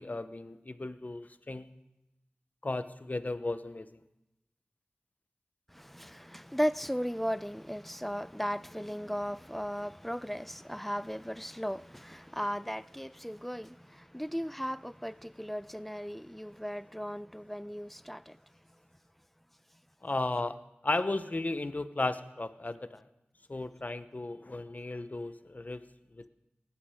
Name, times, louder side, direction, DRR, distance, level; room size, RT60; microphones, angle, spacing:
voice 1, 0.0-1.7 2.6-3.9 20.0-20.6 20.8-23.0 23.5-25.8 26.1-26.3, left 2 dB, 45° left, 0.8 m, -35 dB
voice 2, 5.7-18.4, equal, 5° left, 0.4 m, -36 dB
19.0 x 8.5 x 5.1 m
wide cardioid pair, 45°, 4 cm